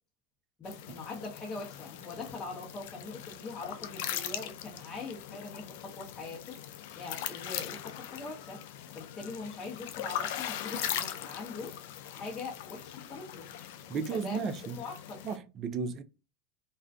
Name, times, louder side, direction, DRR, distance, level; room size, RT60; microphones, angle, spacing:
sound 1, 0.6-15.4, left 11 dB, 70° left, 0.3 m, -40 dB
voice 1, 0.6-6.6 6.9-8.6 8.9-11.7 12.0-13.5 14.1-15.2, left 3 dB, 25° left, 0.7 m, -42 dB
voice 2, 13.9-14.8 15.2-16.0, right 6 dB, 40° right, 0.4 m, -34 dB
2.5 x 2.3 x 2.2 m
hypercardioid pair, 95°, 0 cm